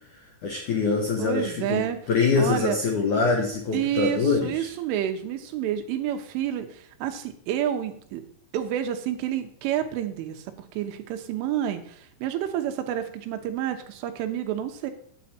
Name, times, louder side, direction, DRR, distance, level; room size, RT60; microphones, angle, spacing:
voice 1, 0.4-4.7, left 4 dB, 80° left, 1 dB, 1.7 m, -24 dB
voice 2, 1.2-2.0 2.4-2.8 3.7-8.2 8.5-14.9, right 11 dB, 80° right, 7 dB, 3.4 m, -29 dB
9.1 x 8.5 x 4.3 m, 0.63 s
omnidirectional pair, 5.6 m